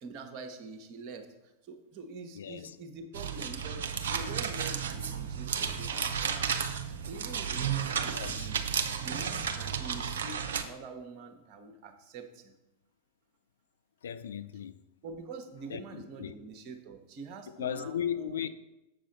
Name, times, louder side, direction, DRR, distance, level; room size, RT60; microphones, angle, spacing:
voice 1, 0.0-6.7 7.0-8.6 9.0-12.5 15.0-18.5, right 3 dB, 40° right, 1.0 m, -45 dB
voice 2, 2.3-2.8 8.1-8.5 14.0-14.7 15.7-15.8 16.2-16.3 17.6-18.5, left 9 dB, 65° left, 0.3 m, -36 dB
sound 1, 3.1-10.6, right 7 dB, 60° right, 0.6 m, -33 dB
7.5 x 6.2 x 4.0 m
figure-of-eight pair, 90°, 0 cm